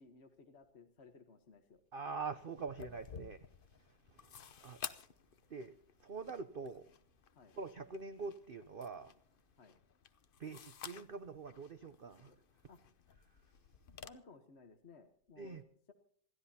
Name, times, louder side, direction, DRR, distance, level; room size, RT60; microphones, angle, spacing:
voice 1, 0.0-1.8 7.3-7.6 9.6-9.8 12.7-12.8 14.0-15.9, left 4 dB, 45° left, 1.2 m, -59 dB
voice 2, 1.9-3.4 4.1-4.3 4.6-5.0 5.5-5.8 6.0-6.9 7.6-9.1 10.4-12.3 15.4-15.6, right 4 dB, 75° right, 0.5 m, -44 dB
sound 1, 2.6-14.1, left 7 dB, 60° left, 0.5 m, -53 dB
27.0 x 13.0 x 2.8 m
omnidirectional pair, 1.9 m